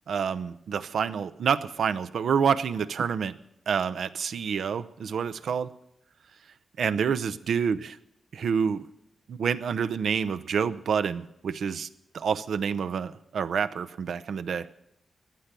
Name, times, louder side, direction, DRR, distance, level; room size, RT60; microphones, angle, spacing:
voice 1, 0.1-3.4 3.7-5.7 6.8-8.0 8.3-8.9 9.3-11.9 12.1-14.7, right 6 dB, 75° right, 13 dB, 0.6 m, -28 dB
15.0 x 10.0 x 6.8 m, 0.80 s
supercardioid pair, 50°, 0 cm